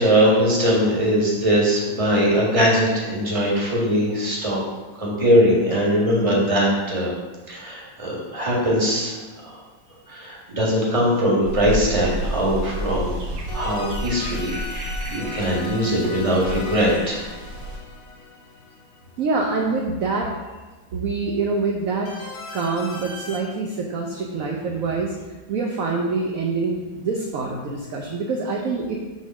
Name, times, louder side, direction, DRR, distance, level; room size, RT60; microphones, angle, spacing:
voice 1, 0.0-4.6 5.0-7.1 7.5-9.6 10.1-13.2 13.5-17.2, equal, 20° right, -4 dB, 1.5 m, -21 dB
sound 1, 11.4-17.8, right 1 dB, 85° right, 2.1 m, -31 dB
sound 2, 13.5-19.4 22.1-23.4, left 4 dB, 70° left, 1.5 m, -37 dB
voice 2, 19.2-20.3 20.9-22.1 22.5-25.1 25.5-29.0, right 4 dB, 60° right, 0 dB, 0.9 m, -25 dB
6.4 x 3.7 x 6.1 m, 1.3 s
omnidirectional pair, 2.1 m